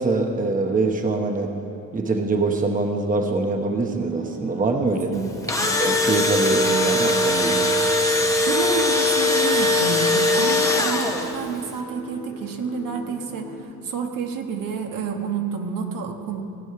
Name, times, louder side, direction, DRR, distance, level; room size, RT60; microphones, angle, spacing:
voice 1, 0.0-1.5 1.9-5.1 5.8-7.7, right 3 dB, 25° right, 3 dB, 0.9 m, -23 dB
sound 1, 4.0-13.6, equal, 75° left, 2.5 m, -39 dB
voice 2, 5.1-5.5 8.4-16.4, right 5 dB, 70° right, 3 dB, 1.3 m, -29 dB
Engine / Drill, 5.2-11.5, left 2 dB, 10° left, 1.0 m, -20 dB
17.0 x 6.4 x 9.5 m, 2.9 s
cardioid pair, 145°, 35 cm